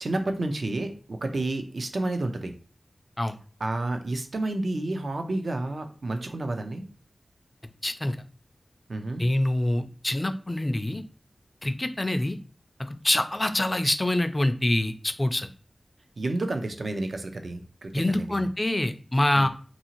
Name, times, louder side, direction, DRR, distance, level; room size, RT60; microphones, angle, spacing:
voice 1, 0.0-2.5 3.6-6.8 8.9-9.2 16.2-18.4 19.3-19.5, right 2 dB, 70° right, 6 dB, 0.4 m, -30 dB
voice 2, 7.8-8.2 9.2-11.0 11.6-12.4 12.8-15.5 17.9-19.5, left 1 dB, 25° left, 8 dB, 0.3 m, -25 dB
2.8 x 2.6 x 2.9 m, 0.40 s
wide cardioid pair, 65°, 0 cm